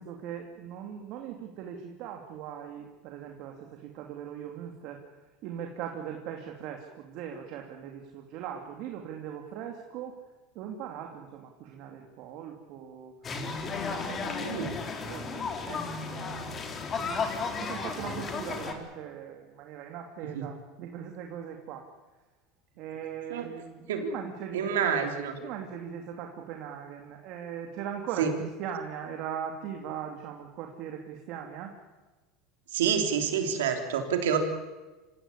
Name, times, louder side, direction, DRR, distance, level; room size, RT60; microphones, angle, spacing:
voice 1, 0.0-5.0 5.4-10.2 10.5-13.1 13.7-16.5 17.1-21.9 22.8-24.9 25.4-28.3 28.6-31.7, right 8 dB, 60° right, 3 dB, 2.6 m, -40 dB
sound 1, 13.2-18.7, left 4 dB, 30° left, 3.9 m, -34 dB
voice 2, 14.4-14.8 20.3-20.4 23.3-23.5 23.9-24.1 24.5-25.4 28.2-28.3 32.7-34.4, right 7 dB, 90° right, 5 dB, 3.5 m, -28 dB
26.5 x 15.5 x 9.9 m, 1.2 s
supercardioid pair, 110°, 0 cm